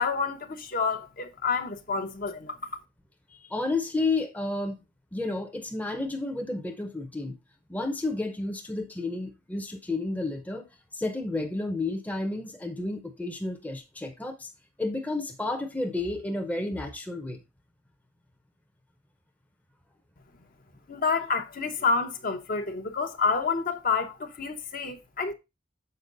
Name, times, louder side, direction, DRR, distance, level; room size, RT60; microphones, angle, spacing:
voice 1, 0.0-2.6 20.9-25.3, left 4 dB, 50° left, 0.8 m, -28 dB
voice 2, 3.3-4.8 5.1-7.4 7.7-10.7 10.9-14.5 14.8-17.4, left 2 dB, 10° left, 0.6 m, -31 dB
6.7 x 4.5 x 3.8 m
head